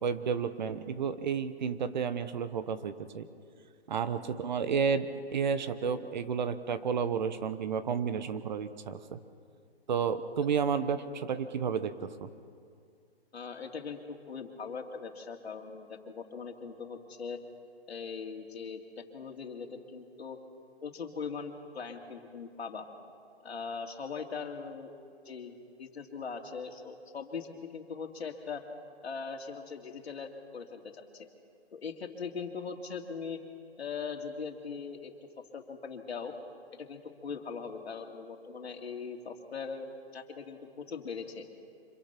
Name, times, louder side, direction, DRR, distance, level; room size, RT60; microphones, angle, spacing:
voice 1, 0.0-3.3 3.9-9.2 9.9-12.3, right 6 dB, 45° right, 12 dB, 1.1 m, -31 dB
voice 2, 13.3-17.4 17.9-20.4 20.8-22.9 23.4-24.9 25.2-28.6 29.0-31.3 31.7-33.4 33.8-35.1 35.5-36.3 36.8-41.5, left 5 dB, 75° left, 3 dB, 2.7 m, -40 dB
26.0 x 24.0 x 5.9 m, 2.3 s
hypercardioid pair, 160°, 32 cm